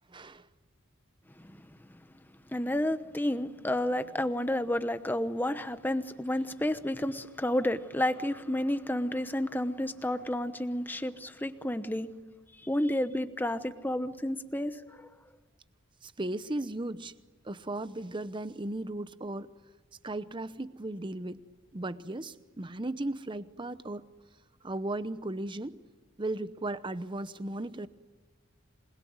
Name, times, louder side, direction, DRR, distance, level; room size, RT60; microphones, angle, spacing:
voice 1, 0.1-0.5 16.0-17.1 17.4-19.5 20.0-21.4 21.7-24.0 24.6-25.8 26.2-27.9, right 2 dB, 25° right, 0.8 m, -36 dB
voice 2, 2.5-12.1 12.6-15.1, left 1 dB, 10° left, 0.9 m, -31 dB
27.5 x 21.0 x 9.6 m
head